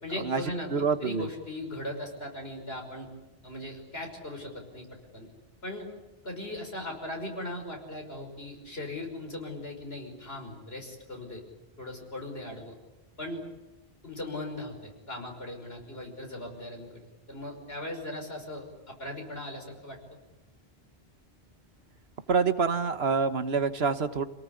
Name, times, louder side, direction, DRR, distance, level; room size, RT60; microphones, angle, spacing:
voice 1, 0.0-3.1 3.4-4.9 5.1-5.3 5.6-5.9 6.2-11.4 11.8-12.8 13.2-13.4 14.0-17.0 17.3-20.0, left 1 dB, 75° left, 2 dB, 6.1 m, -38 dB
voice 2, 0.7-1.3 22.3-24.3, right 5 dB, 80° right, 11 dB, 1.5 m, -26 dB
28.5 x 18.5 x 9.8 m, 1.0 s
omnidirectional pair, 1.0 m